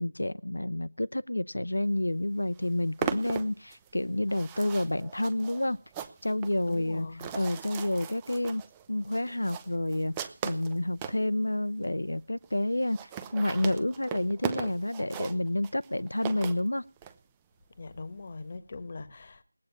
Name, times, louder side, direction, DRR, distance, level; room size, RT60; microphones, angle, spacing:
voice 1, 0.0-5.8 6.2-7.1 7.3-8.6 8.9-16.8, left 1 dB, 80° left, 0.7 m, -29 dB
sound 1, 2.0-2.1 2.4-11.2 11.8-11.9 12.1-12.2 12.4-12.5 12.8-17.1, right 8 dB, 10° right, 0.7 m, -39 dB
voice 2, 6.7-7.3 17.8-19.4, left 3 dB, 30° left, 1.4 m, -41 dB
19.5 x 8.6 x 7.0 m
figure-of-eight pair, 170°, 0 cm